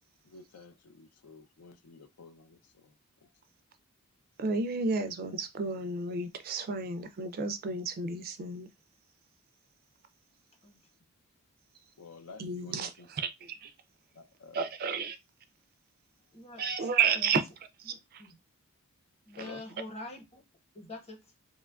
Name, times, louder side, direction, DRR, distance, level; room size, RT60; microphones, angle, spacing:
voice 1, 0.2-2.9 3.2-3.3 12.0-13.1 14.1-14.7 19.4-19.6, left 4 dB, 80° left, 0.4 m, -51 dB
voice 2, 4.4-8.7 12.4-13.7 14.5-15.2 16.6-17.4 17.8-18.2 19.4-19.5, right 5 dB, 45° right, 0.3 m, -32 dB
voice 3, 16.3-17.3 17.9-18.3 19.3-20.4 20.7-21.3, left 2 dB, 30° left, 0.9 m, -46 dB
2.9 x 2.3 x 2.2 m
head